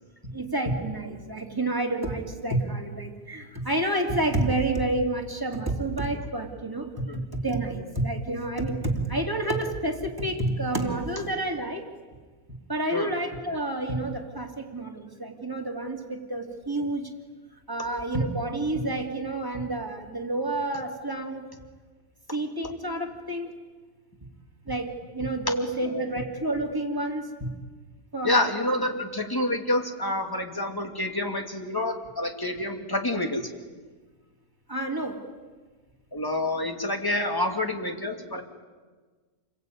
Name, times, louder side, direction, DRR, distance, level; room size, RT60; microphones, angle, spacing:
voice 1, 0.3-6.9 7.3-11.9 12.7-17.1 17.7-21.4 22.3-23.5 24.7-27.5 28.1-28.4 28.9-29.0 34.7-35.2, right 2 dB, 15° right, 2 dB, 3.1 m, -29 dB
voice 2, 28.2-33.5 36.1-38.4, left 1 dB, 15° left, 4 dB, 2.7 m, -28 dB
29.0 x 21.5 x 9.5 m, 1.4 s
omnidirectional pair, 1.6 m